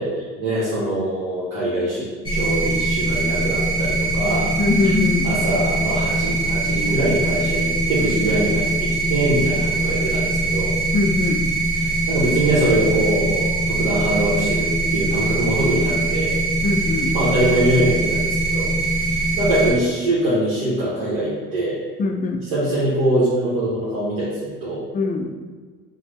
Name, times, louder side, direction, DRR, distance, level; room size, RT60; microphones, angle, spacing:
voice 1, 0.0-4.5 5.2-10.7 11.7-16.4 17.1-21.8 22.4-24.8, right 1 dB, 85° right, -9 dB, 0.9 m, -23 dB
sound 1, 2.2-19.7, right 2 dB, 15° right, 0.9 m, -22 dB
voice 2, 4.6-5.3 10.9-11.4 16.6-17.1 22.0-22.4 24.9-25.3, left 3 dB, 30° left, 5 dB, 0.4 m, -21 dB
3.4 x 2.0 x 3.0 m, 1.5 s
supercardioid pair, 85°, 31 cm